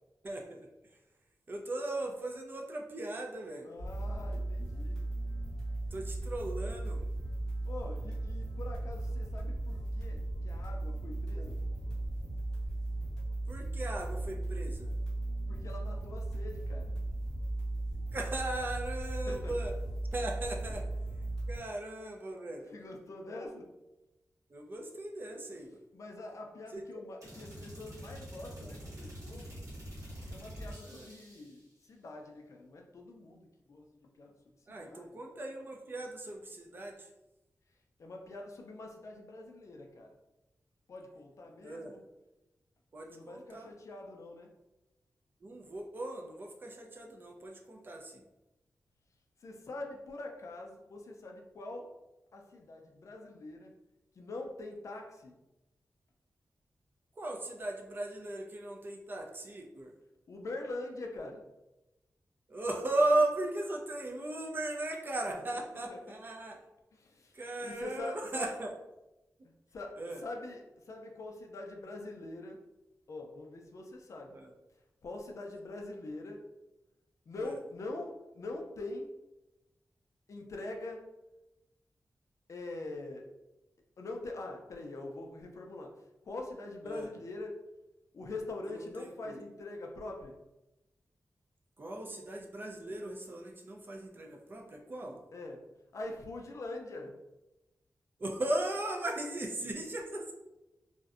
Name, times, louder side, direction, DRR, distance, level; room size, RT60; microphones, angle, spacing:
voice 1, 0.2-0.7 1.5-3.7 5.9-7.0 11.3-11.5 13.5-14.9 18.1-19.7 20.1-20.9 21.5-22.7 24.5-25.8 26.7-27.0 28.6-28.7 30.8-31.1 34.7-37.1 41.6-41.9 42.9-43.7 45.4-48.2 57.2-59.9 62.5-66.6 67.3-68.7 70.0-70.2 74.3-74.5 77.4-77.6 86.8-87.1 88.7-89.4 91.8-95.2 98.2-100.3, right 2 dB, 35° right, 1 dB, 0.3 m, -37 dB
voice 2, 3.6-5.0 7.6-11.6 15.5-16.9 19.3-19.5 20.6-20.7 22.7-23.7 25.9-29.6 30.3-33.9 34.2-34.3 34.7-35.2 38.0-40.2 40.9-42.0 43.1-44.5 49.4-51.9 52.3-53.7 54.2-55.3 60.3-61.5 65.3-65.6 65.9-66.0 66.9-68.5 69.7-72.6 73.1-74.4 75.0-76.4 77.3-79.1 80.3-81.0 82.5-83.2 84.0-85.9 86.2-87.5 88.1-90.3 95.3-95.6 95.9-97.2, left 2 dB, 55° left, 1 dB, 0.3 m, -44 dB
sound 1, 3.8-21.6, right 2 dB, 10° left, 0.7 m, -36 dB
sound 2, 27.2-31.7, equal, 60° right, 0.9 m, -46 dB
2.5 x 2.0 x 2.4 m, 0.99 s
wide cardioid pair, 170°, 6 cm